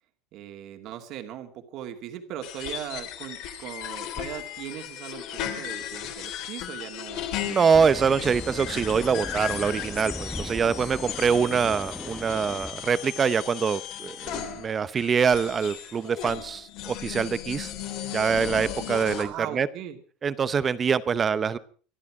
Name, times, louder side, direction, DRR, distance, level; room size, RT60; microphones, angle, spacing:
voice 1, 0.3-7.2 11.4-11.8 19.2-20.0, right 11 dB, 45° right, 6 dB, 2.4 m, -39 dB
sound 1, 2.4-19.2, left 11 dB, 50° left, 3.4 m, -36 dB
voice 2, 7.4-17.7 18.1-19.7 20.2-21.6, right 6 dB, 20° right, 16 dB, 0.7 m, -24 dB
sound 2, 7.7-12.7, left 1 dB, 5° left, 0.9 m, -38 dB
25.5 x 11.5 x 4.8 m, 0.41 s
cardioid pair, 160°, 0 cm